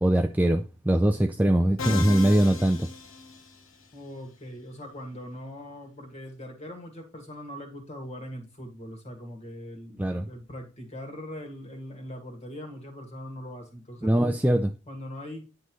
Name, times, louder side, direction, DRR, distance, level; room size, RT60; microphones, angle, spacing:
voice 1, 0.0-2.9 10.0-10.3 14.0-14.7, right 1 dB, 10° right, 0.4 m, -22 dB
Musical instrument, 1.8-3.9, left 4 dB, 70° left, 1.1 m, -35 dB
voice 2, 3.9-14.4 14.9-15.5, equal, 30° left, 2.0 m, -41 dB
10.0 x 5.4 x 3.1 m
head